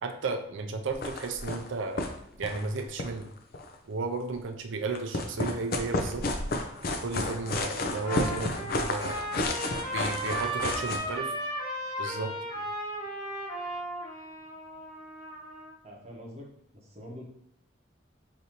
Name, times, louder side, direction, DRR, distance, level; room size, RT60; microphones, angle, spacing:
voice 1, 0.0-2.1 2.4-3.3 3.9-6.3 6.8-9.2 9.9-11.4 12.0-12.4, right 3 dB, 75° right, 5 dB, 0.5 m, -34 dB
sound 1, 0.9-1.7 2.0-2.1 2.4-3.7 4.9-11.0, left 2 dB, 50° left, 0.4 m, -31 dB
Trumpet, 7.3-15.7, right 1 dB, 20° left, 1.3 m, -36 dB
voice 2, 15.8-16.5 16.7-17.2, equal, 35° right, -1 dB, 0.8 m, -45 dB
4.9 x 2.7 x 2.9 m, 0.77 s
head